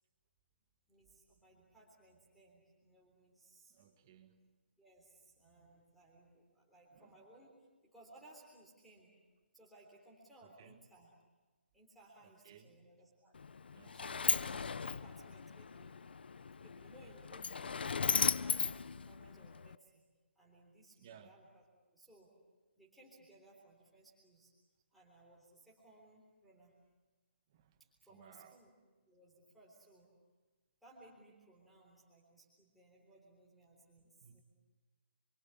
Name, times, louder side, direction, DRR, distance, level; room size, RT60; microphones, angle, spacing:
voice 1, 0.9-3.8 4.8-7.5 7.9-9.1 9.5-11.1 11.7-13.4 13.9-16.0 16.6-20.0 20.4-21.6 21.9-22.3 22.8-24.5 24.9-26.7 27.8-28.7 29.1-30.1 30.8-34.4, right 2 dB, ahead, -6 dB, 3.7 m, -62 dB
voice 2, 3.7-4.5 6.9-7.2 10.4-10.8 12.2-12.8 13.7-14.3 21.0-21.3 27.5-27.8 28.1-28.6 34.2-34.4, right 8 dB, 20° right, 8 dB, 1.8 m, -61 dB
Sliding door, 13.3-19.7, left 5 dB, 55° left, 0.8 m, -37 dB
28.0 x 23.5 x 8.3 m, 1.3 s
hypercardioid pair, 180°, 6 cm